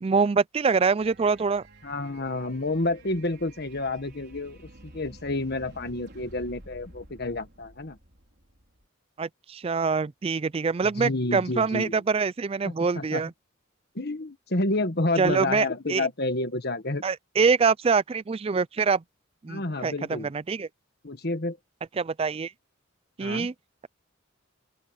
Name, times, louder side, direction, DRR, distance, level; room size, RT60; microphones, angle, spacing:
voice 1, 0.0-1.6 9.2-13.3 15.2-16.1 17.0-19.0 19.4-20.7 22.0-22.5 23.2-23.5, right 5 dB, 30° right, 0.4 m, -25 dB
sound 1, 1.0-8.9, right 1 dB, 55° right, 4.7 m, -50 dB
voice 2, 1.8-8.0 11.0-12.0 12.6-13.2 13.9-17.0 19.5-20.3 21.0-21.6 23.2-23.5, left 2 dB, 50° left, 1.5 m, -29 dB
open air
head